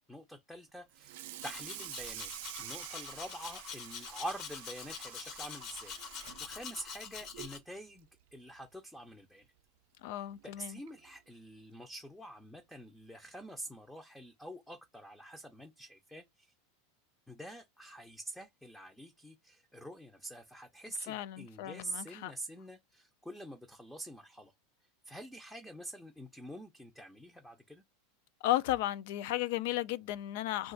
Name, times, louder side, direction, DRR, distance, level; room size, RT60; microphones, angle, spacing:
voice 1, 0.1-2.3 2.6-9.5 10.2-16.5 17.3-24.5 25.1-27.8, right 1 dB, 5° left, 0.5 m, -46 dB
Water tap faucet / Sink (filling or washing), 0.9-7.6 8.0-8.2 8.6-8.7 9.1-9.2 10.3-10.4 10.9-11.1, right 15 dB, 70° right, 0.4 m, -48 dB
Domestic sounds home sounds, 1.4-7.6, left 6 dB, 40° left, 0.7 m, -45 dB
voice 2, 10.0-10.8 21.1-22.3 28.4-30.7, left 15 dB, 65° left, 0.4 m, -34 dB
2.4 x 2.3 x 3.8 m
supercardioid pair, 145°, 0 cm